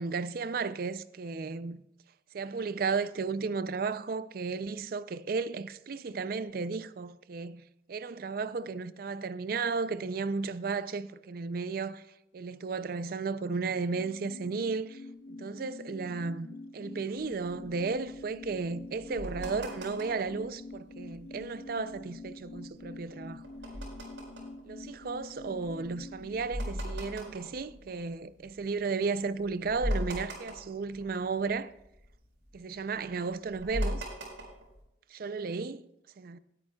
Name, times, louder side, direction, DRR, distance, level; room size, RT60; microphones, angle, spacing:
voice 1, 0.0-1.8 2.3-12.1 12.3-15.0 15.3-23.4 24.6-31.7 32.5-34.0 35.1-35.8 36.2-36.4, right 4 dB, 50° right, 0.4 m, -34 dB
sound 1, 13.5-28.6 28.9-29.0, left 2 dB, 80° left, 0.9 m, -47 dB
sound 2, 17.2-20.4 20.8-20.9 21.1-21.4 21.9-28.6 29.0-29.1 29.4-31.5 31.8-34.8, equal, 90° right, 4.4 m, -38 dB
19.0 x 8.8 x 2.3 m
head